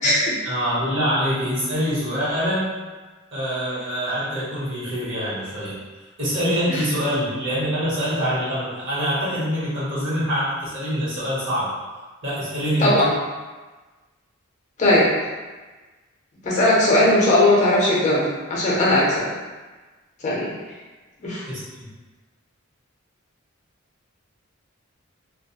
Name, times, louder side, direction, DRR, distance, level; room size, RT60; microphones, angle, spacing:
voice 1, 0.0-2.7 3.3-5.8 6.2-11.7 12.2-13.0 21.5-21.9, equal, 60° right, -10 dB, 1.1 m, -25 dB
voice 2, 12.8-13.1 14.8-15.1 16.4-19.2 20.2-20.5 21.2-21.4, left 1 dB, 35° left, -5 dB, 0.6 m, -18 dB
2.3 x 2.0 x 2.8 m, 1.3 s
head